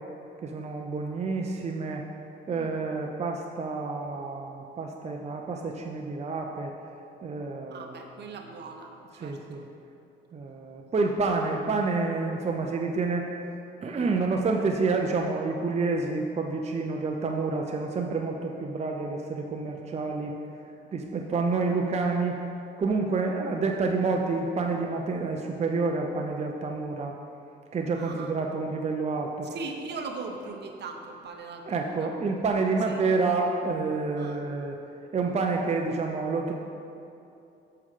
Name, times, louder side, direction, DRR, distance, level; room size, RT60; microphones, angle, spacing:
voice 1, 0.4-2.1 2.5-6.7 7.2-8.0 9.2-9.6 10.3-13.3 13.8-20.4 20.9-22.4 22.8-27.2 27.7-29.5 31.7-34.8 35.1-36.5, right 3 dB, 35° right, 2 dB, 0.6 m, -28 dB
voice 2, 2.5-2.8 7.7-8.9 9.2-9.7 27.9-28.3 29.4-32.1 32.9-33.0 34.2-34.4, right 4 dB, 60° right, 4 dB, 0.9 m, -40 dB
8.3 x 6.7 x 3.6 m, 2.7 s
cardioid pair, 90°, 20 cm